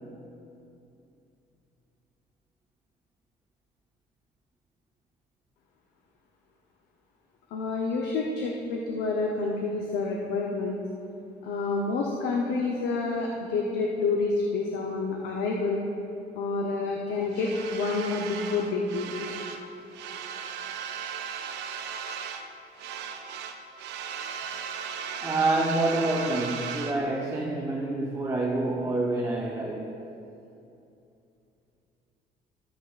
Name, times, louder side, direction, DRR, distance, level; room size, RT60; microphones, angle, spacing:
voice 1, 7.5-10.8 11.4-15.8 16.4-19.1, left 3 dB, 80° left, -1 dB, 0.9 m, -28 dB
sound 1, 17.3-19.7 19.9-22.5 22.8-27.0, right 7 dB, 90° right, 0.6 m, -37 dB
voice 2, 25.2-30.0, right 2 dB, 20° right, -2 dB, 0.8 m, -27 dB
13.0 x 7.9 x 2.5 m, 2.7 s
cardioid pair, 110°, 17 cm